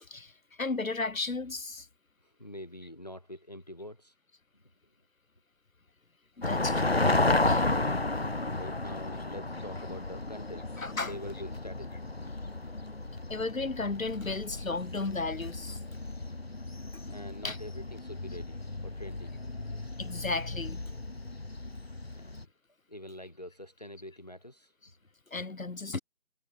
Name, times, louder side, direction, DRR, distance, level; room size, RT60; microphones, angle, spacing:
voice 1, 0.0-1.9 6.4-7.0 7.4-7.7 10.8-11.1 13.3-15.8 16.9-17.2 17.4-17.6 20.0-20.8 25.3-26.0, left 3 dB, 85° left, 1.7 m, -34 dB
voice 2, 2.2-4.1 8.4-10.7 11.0-12.0 17.1-19.3 22.1-22.5 22.9-24.7, left 1 dB, 30° left, 1.6 m, -45 dB
sound 1, 6.4-22.4, left 2 dB, 50° left, 1.6 m, -33 dB
figure-of-eight pair, 180°, 40 cm